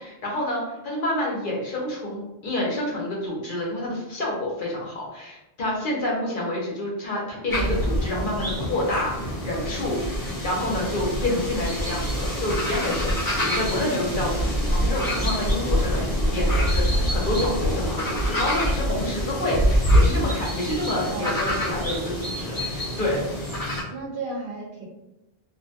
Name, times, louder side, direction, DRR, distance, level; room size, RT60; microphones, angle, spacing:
voice 1, 0.0-23.2, left 1 dB, 60° left, -3 dB, 0.8 m, -28 dB
sound 1, 7.5-23.8, equal, 20° left, 0.8 m, -25 dB
voice 2, 21.1-21.7 23.9-24.8, right 2 dB, 60° right, -1 dB, 0.7 m, -34 dB
2.5 x 2.2 x 2.6 m, 0.93 s
omnidirectional pair, 1.0 m